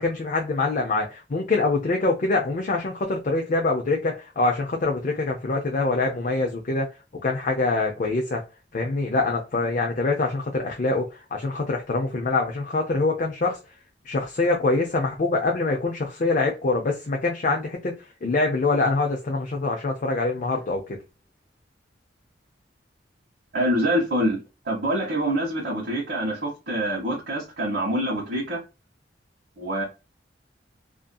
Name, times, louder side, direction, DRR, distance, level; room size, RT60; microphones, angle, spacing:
voice 1, 0.0-6.9 7.2-8.4 8.7-11.0 11.3-13.6 14.1-17.9 18.2-20.8, left 3 dB, 45° left, 0.5 m, -24 dB
voice 2, 23.5-24.4 24.6-28.6 29.6-29.8, right 1 dB, 60° right, 1.0 m, -25 dB
2.6 x 2.6 x 2.2 m
head